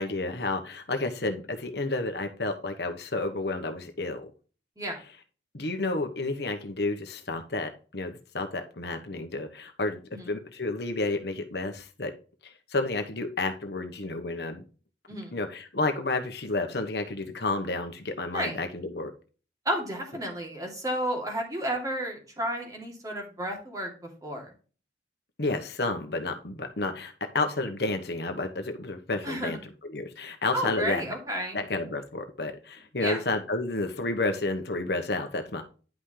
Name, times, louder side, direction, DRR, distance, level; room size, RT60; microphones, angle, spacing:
voice 1, 0.0-4.3 5.5-10.0 10.3-12.1 12.7-14.6 15.3-19.1 25.4-31.0 31.5-35.6, left 2 dB, 65° left, 6 dB, 1.2 m, -31 dB
voice 2, 19.6-23.9 24.2-24.5 29.2-29.6 30.5-31.6 33.0-33.2, right 1 dB, 20° right, 1 dB, 2.8 m, -32 dB
10.5 x 5.8 x 3.3 m, 0.36 s
head